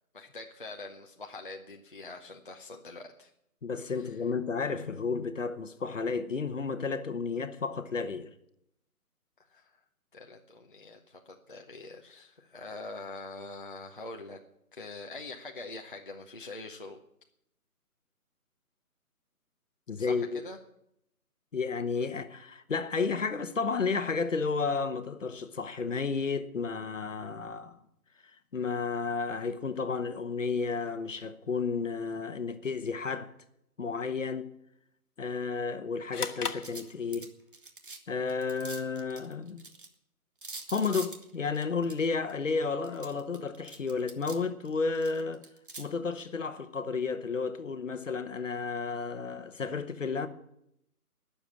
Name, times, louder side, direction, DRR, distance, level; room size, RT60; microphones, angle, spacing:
voice 1, 0.1-3.3 3.9-4.2 9.5-9.8 10.1-14.4 14.7-17.0 20.0-20.6, left 3 dB, 35° left, 0.8 m, -44 dB
voice 2, 3.6-8.3 19.9-20.4 21.5-27.8 28.5-33.3 33.8-34.5 35.2-37.3 38.1-39.6 40.7-45.4 45.8-50.3, left 4 dB, 55° left, 1.2 m, -32 dB
sound 1, 36.1-37.5, left 5 dB, 80° left, 1.5 m, -37 dB
sound 2, 36.6-38.0 38.3-39.9 40.4-42.3 42.8-44.4 44.7-45.8, right 3 dB, 35° right, 1.2 m, -45 dB
20.0 x 7.1 x 7.2 m
hypercardioid pair, 175°, 45 cm